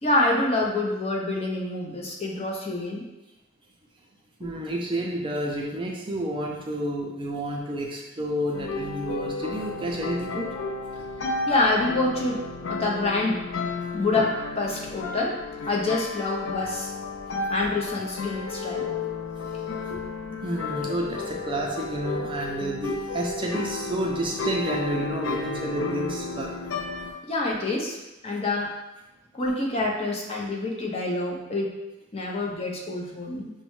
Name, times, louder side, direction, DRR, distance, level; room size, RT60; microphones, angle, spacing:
voice 1, 0.0-3.0 4.4-4.5 11.5-12.4 12.7-13.4 13.9-15.4 15.7-16.9 17.5-18.9 19.9-20.0 27.3-28.0 28.2-28.7 29.3-31.7 32.1-33.5, left 2 dB, 30° left, -2 dB, 0.7 m, -26 dB
voice 2, 4.4-10.5 20.4-26.6, right 1 dB, 25° right, -1 dB, 0.4 m, -30 dB
sound 1, 8.5-27.1, left 4 dB, 85° left, 0.4 m, -32 dB
6.0 x 2.1 x 3.1 m, 0.99 s
head